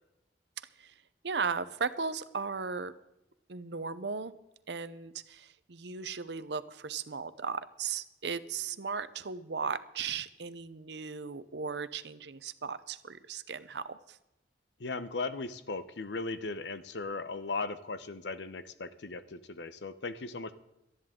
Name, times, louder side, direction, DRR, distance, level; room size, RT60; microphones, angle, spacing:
voice 1, 0.6-0.9 1.2-2.9 3.5-4.3 4.7-14.2, right 5 dB, 70° right, 14 dB, 0.8 m, -36 dB
voice 2, 14.8-20.5, left 3 dB, 75° left, 13 dB, 0.9 m, -37 dB
18.5 x 13.0 x 3.8 m, 0.91 s
head